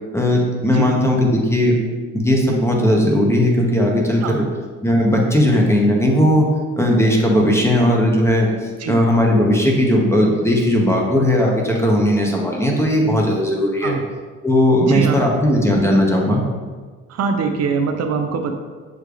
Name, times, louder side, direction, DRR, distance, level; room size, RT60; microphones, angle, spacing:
voice 1, 0.1-1.8 2.2-4.4 4.8-6.5 6.8-13.9 14.4-16.4, left 1 dB, 10° left, -1 dB, 0.8 m, -17 dB
voice 2, 14.8-15.2 17.1-18.5, right 5 dB, 60° right, 5 dB, 0.4 m, -22 dB
6.4 x 3.2 x 2.4 m, 1.4 s
cardioid pair, 90°, 30 cm